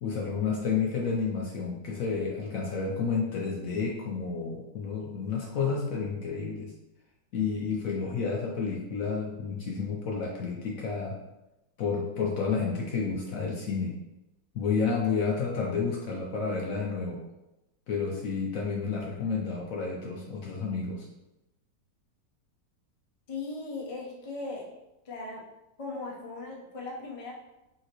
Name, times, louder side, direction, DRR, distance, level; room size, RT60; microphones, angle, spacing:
voice 1, 0.0-6.7 7.3-11.2 11.8-14.0 14.5-17.2 17.9-21.1, left 5 dB, 65° left, -2 dB, 0.9 m, -30 dB
voice 2, 23.3-24.7 25.0-25.4 25.8-27.4, left 3 dB, 40° left, -2 dB, 0.5 m, -38 dB
5.7 x 2.8 x 2.9 m, 0.95 s
omnidirectional pair, 1.9 m